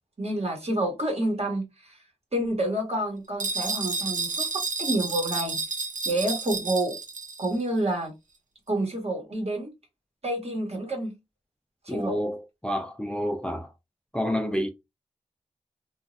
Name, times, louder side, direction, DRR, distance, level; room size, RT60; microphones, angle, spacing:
voice 1, 0.2-2.0 2.3-5.6 6.0-7.0 7.4-8.1 8.7-9.7 10.2-11.1 11.8-12.2, right 1 dB, 50° right, 1.2 m, -28 dB
sound 1, 3.4-7.5, right 4 dB, 75° right, 0.6 m, -31 dB
voice 2, 11.9-13.7 14.1-14.7, equal, 5° left, 0.4 m, -29 dB
3.1 x 2.5 x 2.5 m
wide cardioid pair, 65°, 13 cm